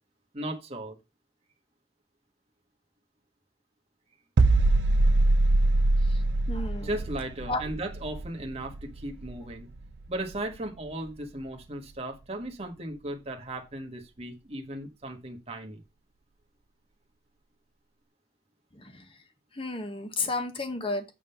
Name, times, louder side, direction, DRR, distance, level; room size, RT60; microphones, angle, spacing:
voice 1, 0.3-1.0 6.8-9.7 10.1-15.8, right 1 dB, 35° right, 1.4 m, -36 dB
sound 1, 4.4-10.1 10.3-10.6, right 2 dB, 80° right, 0.6 m, -24 dB
voice 2, 6.5-6.9 7.5-7.6 18.8-19.0 19.6-21.0, left 3 dB, 30° left, 1.3 m, -32 dB
8.5 x 3.7 x 5.6 m
head